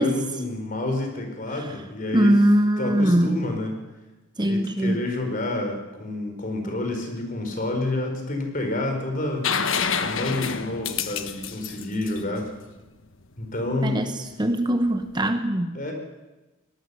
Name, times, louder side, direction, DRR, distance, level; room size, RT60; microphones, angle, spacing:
voice 1, 0.0-2.4 2.8-3.8 4.4-9.5 10.0-12.5 13.4-14.1 15.7-15.9, left 2 dB, 40° left, 4 dB, 4.4 m, -29 dB
voice 2, 2.1-3.4 4.4-5.0 13.8-15.8, right 1 dB, 20° right, 7 dB, 0.9 m, -21 dB
sound 1, 9.4-13.1 15.0-15.1, left 6 dB, 65° left, 1.3 m, -28 dB
22.5 x 18.5 x 7.0 m, 1.1 s
head